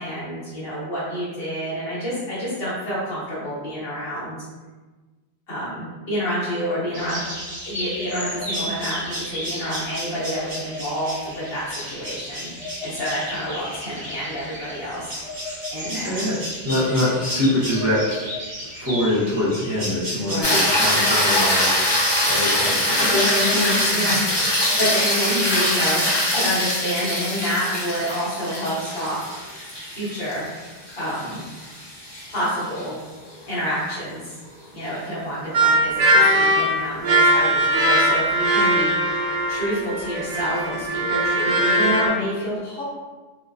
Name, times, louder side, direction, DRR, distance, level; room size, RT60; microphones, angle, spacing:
voice 1, 0.0-4.4 5.5-7.3 7.6-15.2 15.7-16.3 20.3-20.6 23.9-24.2 24.5-26.0 26.3-29.4 29.9-30.5 31.0-31.4 32.3-33.0 33.5-34.4 34.7-42.8, equal, 65° left, -9 dB, 1.2 m, -28 dB
sound 1, 6.9-24.5, equal, 45° right, 0.9 m, -33 dB
voice 2, 16.0-16.4 16.6-18.2 18.7-21.9 22.3-24.1, left 1 dB, 20° right, -12 dB, 0.6 m, -24 dB
sound 2, 20.4-32.8 37.3-37.4, left 1 dB, 30° left, 0.5 m, -23 dB
sound 3, 35.5-42.1, right 1 dB, 80° right, 0.8 m, -20 dB
2.7 x 2.2 x 2.4 m, 1.3 s
omnidirectional pair, 1.1 m